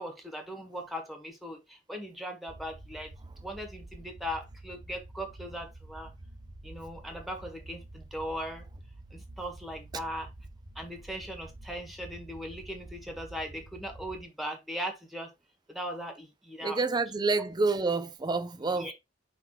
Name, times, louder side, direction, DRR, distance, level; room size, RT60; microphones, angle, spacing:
voice 1, 0.0-3.1 3.4-6.1 6.6-8.7 9.1-10.3 10.7-15.3 15.7-16.8 18.7-18.9, equal, ahead, 1.6 m, -39 dB
sound 1, 2.5-14.2, right 1 dB, 50° right, 1.0 m, -48 dB
voice 2, 16.6-18.9, right 3 dB, 25° right, 0.5 m, -28 dB
5.9 x 3.5 x 4.6 m
head